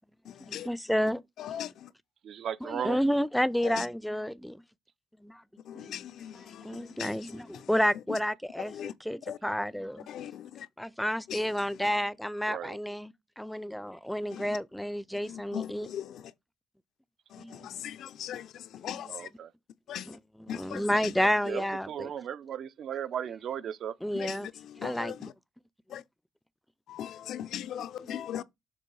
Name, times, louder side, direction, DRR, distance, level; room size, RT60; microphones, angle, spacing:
voice 1, 0.4-1.2 2.6-4.6 5.2-5.4 5.7-6.0 6.3-10.1 10.8-15.9 17.4-17.7 18.8-19.1 19.9-22.1 24.0-24.5 24.8-25.2 25.9-26.0 28.0-28.2, equal, 5° left, 0.4 m, -31 dB
voice 2, 2.2-3.0 12.5-12.8 19.1-19.5 21.5-23.9, right 9 dB, 65° right, 0.5 m, -36 dB
voice 3, 5.7-6.3 8.8-8.9 9.3-9.4 10.1-10.5 14.3-14.4 15.3-16.0 17.6-18.5 18.8-19.1 19.9-20.0 20.5-20.8 24.2-24.3 24.8-25.1 25.9-26.0 26.9-28.4, left 10 dB, 75° left, 0.4 m, -38 dB
6.8 x 2.9 x 4.7 m
cardioid pair, 90°, 0 cm